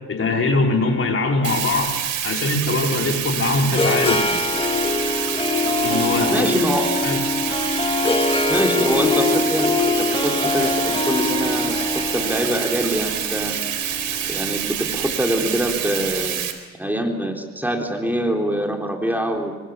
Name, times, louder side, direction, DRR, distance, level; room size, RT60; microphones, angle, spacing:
voice 1, 0.1-2.0 2.2-4.4 5.8-6.5 7.0-7.2, left 3 dB, 45° left, 1 dB, 5.2 m, -22 dB
Bathtub (filling or washing), 1.4-16.5, right 9 dB, 75° right, 4.2 m, -27 dB
Harp, 3.1-15.2, left 3 dB, 15° left, 2.4 m, -23 dB
voice 2, 6.3-6.9 8.5-9.7 10.0-11.7 12.1-13.6 14.3-16.5 16.8-19.5, right 1 dB, 5° right, 2 dB, 3.7 m, -24 dB
25.5 x 24.5 x 7.4 m, 1.3 s
cardioid pair, 90°, 30 cm